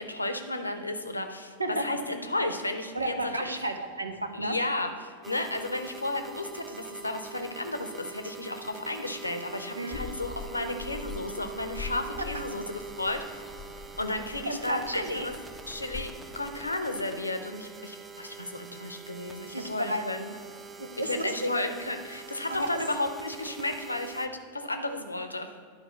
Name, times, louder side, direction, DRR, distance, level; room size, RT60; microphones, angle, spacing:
voice 1, 0.0-1.5 1.8-3.1 3.4-3.6 4.3-13.2 14.0-15.3 15.7-20.3 21.0-25.5, left 2 dB, 85° left, 7 dB, 0.8 m, -33 dB
voice 2, 2.9-4.6 9.7-10.0 12.3-12.4 14.4-15.3 19.5-20.1 20.8-21.5 22.5-22.7, right 1 dB, 85° right, 6 dB, 0.9 m, -32 dB
sound 1, 5.2-24.3, right 6 dB, 15° right, 0.7 m, -45 dB
sound 2, 9.9-16.7, left 6 dB, 20° left, 0.5 m, -44 dB
11.0 x 4.7 x 5.8 m, 2.1 s
figure-of-eight pair, 90°, 0 cm